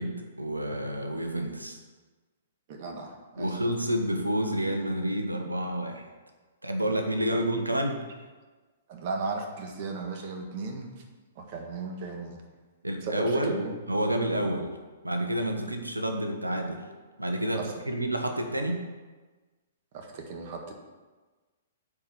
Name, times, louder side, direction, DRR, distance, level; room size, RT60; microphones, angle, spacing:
voice 1, 0.0-1.8 3.4-6.1 6.6-8.0 12.8-13.6 13.9-14.7 15.0-16.8 17.2-18.8, right 1 dB, 85° right, 4 dB, 1.2 m, -29 dB
voice 2, 2.7-3.6 7.3-7.4 8.9-10.9 11.3-12.4 13.0-13.7 17.5-17.7 19.9-20.7, right 4 dB, 40° right, 3 dB, 1.6 m, -35 dB
8.4 x 4.9 x 7.3 m, 1.3 s
figure-of-eight pair, 115°, 0 cm